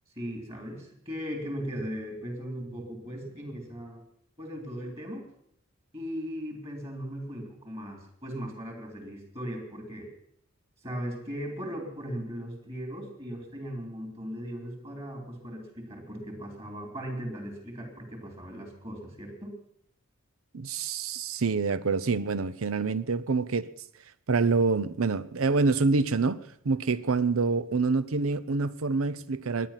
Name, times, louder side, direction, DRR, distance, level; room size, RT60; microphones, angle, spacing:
voice 1, 0.1-4.0 4.4-5.3 5.9-10.1 10.8-19.6, equal, 30° right, 3.2 m, -38 dB
voice 2, 20.5-23.7 24.3-26.4 26.6-29.7, right 4 dB, 70° right, 0.7 m, -26 dB
22.0 x 9.3 x 5.8 m
head